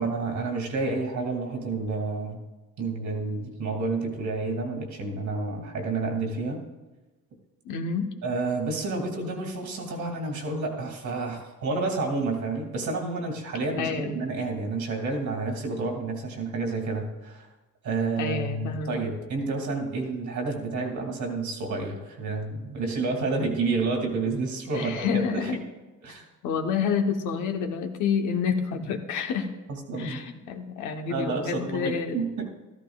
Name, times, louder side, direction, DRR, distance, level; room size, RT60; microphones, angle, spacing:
voice 1, 0.0-2.4 2.8-6.6 8.2-17.5 17.8-25.5 26.0-26.3 29.7-30.2 31.1-32.5, right 3 dB, 70° right, 1 dB, 2.3 m, -30 dB
voice 2, 7.6-8.1 13.8-14.2 18.2-19.0 24.7-25.6 26.4-29.5 29.9-32.2, left 6 dB, 90° left, 5 dB, 1.1 m, -28 dB
14.0 x 13.0 x 2.4 m, 1.1 s
cardioid pair, 90°, 30 cm